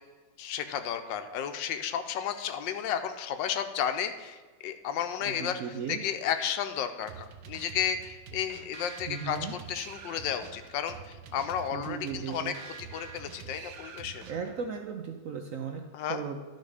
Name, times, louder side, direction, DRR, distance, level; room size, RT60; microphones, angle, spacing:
voice 1, 0.4-5.6 5.9-14.2 15.9-16.2, left 9 dB, 85° left, 9 dB, 1.3 m, -33 dB
voice 2, 5.2-6.0 9.1-9.5 11.7-12.6 14.3-15.8 16.1-16.4, right 6 dB, 70° right, 4 dB, 0.8 m, -36 dB
sound 1, 7.1-14.7, right 6 dB, 90° right, 1.5 m, -46 dB
11.5 x 4.3 x 4.8 m, 1.4 s
omnidirectional pair, 2.0 m